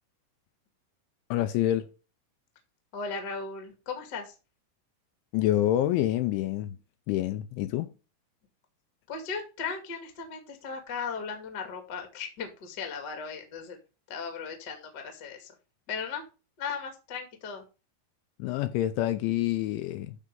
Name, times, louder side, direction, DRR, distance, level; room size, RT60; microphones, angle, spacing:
voice 1, 1.3-1.9 5.3-6.8 7.1-7.9 18.4-20.2, left 13 dB, 80° left, 2.9 m, -27 dB
voice 2, 2.9-4.3 9.1-13.8 14.1-15.5 15.9-16.2 16.6-17.6, left 5 dB, 40° left, 1.6 m, -37 dB
12.0 x 4.3 x 5.5 m
omnidirectional pair, 5.7 m